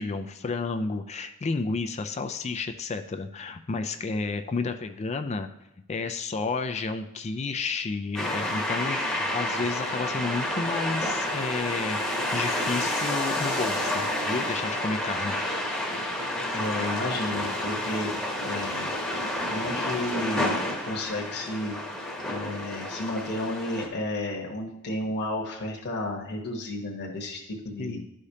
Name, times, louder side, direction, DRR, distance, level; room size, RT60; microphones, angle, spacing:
voice 1, 0.0-5.5 5.9-15.4 27.8-28.1, left 4 dB, 30° left, 8 dB, 0.4 m, -31 dB
sound 1, 8.1-23.9, left 1 dB, ahead, 1.1 m, -30 dB
voice 2, 16.5-18.1 18.4-19.2 19.5-21.7 22.3-28.0, left 1 dB, 50° left, -2 dB, 1.2 m, -32 dB
12.0 x 5.0 x 2.8 m, 0.88 s
head